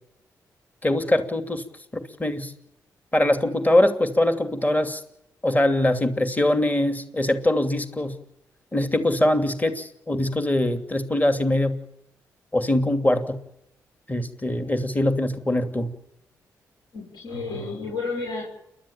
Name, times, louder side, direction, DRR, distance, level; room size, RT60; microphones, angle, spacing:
voice 1, 0.8-1.6 1.9-2.5 3.1-5.0 5.4-8.2 8.7-11.8 12.5-13.4 14.1-15.9, left 1 dB, 20° left, 8 dB, 2.8 m, -22 dB
voice 2, 16.9-18.4, left 3 dB, 65° left, -2 dB, 6.5 m, -31 dB
29.5 x 12.0 x 8.9 m, 0.83 s
hypercardioid pair, 40°, 8 cm